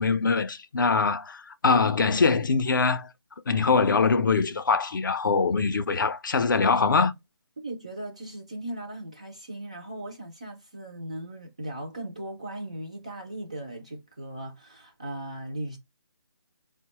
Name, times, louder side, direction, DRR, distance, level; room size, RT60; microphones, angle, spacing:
voice 1, 0.0-3.1 3.5-7.1, left 4 dB, 45° left, 0.5 m, -23 dB
voice 2, 7.6-15.8, right 1 dB, 15° right, 0.3 m, -38 dB
4.5 x 2.1 x 2.9 m
figure-of-eight pair, 165°, 14 cm